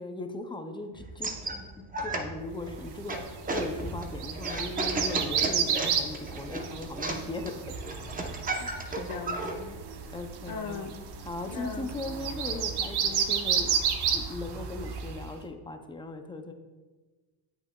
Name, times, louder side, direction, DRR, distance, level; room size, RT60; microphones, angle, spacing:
voice 1, 0.0-7.6 7.8-8.0 10.1-10.8 11.2-13.8 14.1-16.5, left 2 dB, 10° left, 6 dB, 0.4 m, -38 dB
sound 1, 1.0-9.5, right 2 dB, 15° right, 0.7 m, -35 dB
sound 2, 2.8-15.3, right 7 dB, 55° right, 0.7 m, -32 dB
voice 2, 8.6-9.8 10.5-11.0 11.5-11.9, left 5 dB, 45° left, 7 dB, 0.7 m, -39 dB
8.4 x 5.9 x 2.2 m, 1.3 s
cardioid pair, 110°, 48 cm